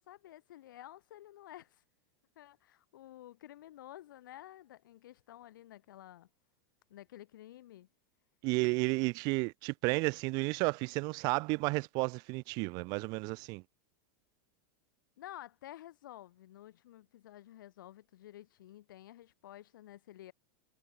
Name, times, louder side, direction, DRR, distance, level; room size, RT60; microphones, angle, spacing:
voice 1, 0.0-1.8 2.4-6.3 6.9-7.9 15.2-20.3, left 13 dB, 80° left, 6.4 m, -52 dB
voice 2, 8.4-13.6, right 27 dB, 40° right, 2.2 m, -32 dB
supercardioid pair, 165°, 11 cm